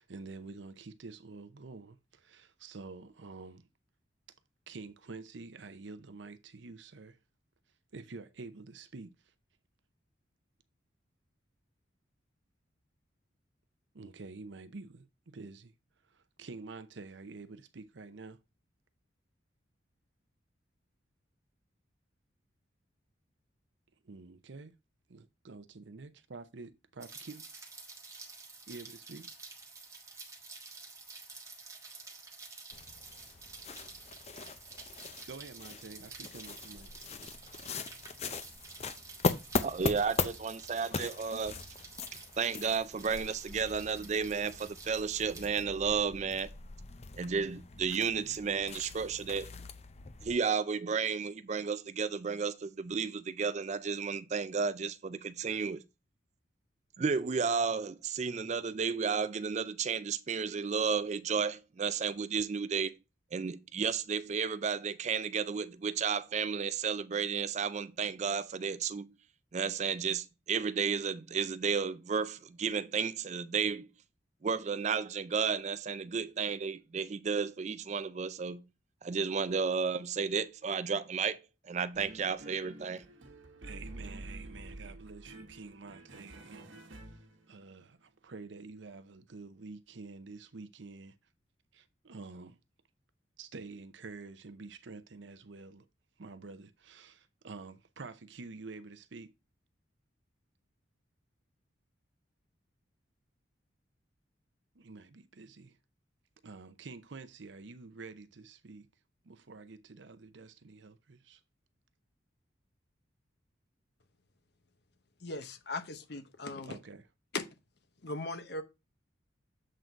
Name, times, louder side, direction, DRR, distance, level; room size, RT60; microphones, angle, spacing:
voice 1, 0.0-3.7 4.7-7.2 7.9-9.3 13.9-15.7 16.1-18.4 24.0-24.7 25.1-27.5 28.7-29.3 35.3-36.9 41.3-41.4 83.6-87.2 87.5-91.2 91.7-92.6 93.4-95.9 96.2-99.3 104.7-105.8 106.4-108.9 109.2-111.4 116.7-117.0, right 3 dB, 70° right, 0.7 m, -48 dB
Rain, 27.0-45.6, right 4 dB, 15° right, 1.5 m, -50 dB
sound 1, 32.7-50.3, left 4 dB, 35° left, 0.5 m, -40 dB
voice 2, 39.6-41.5 42.4-46.5 47.2-49.5 50.2-55.8 57.0-62.9 63.3-69.1 69.5-73.9 74.4-78.6 79.0-81.4 81.6-83.0, right 5 dB, 35° right, 0.4 m, -32 dB
sound 2, 81.9-87.7, right 2 dB, 90° right, 1.3 m, -49 dB
voice 3, 115.2-116.8 117.3-117.5 118.0-118.6, left 3 dB, 60° left, 0.9 m, -38 dB
7.7 x 3.9 x 4.5 m
head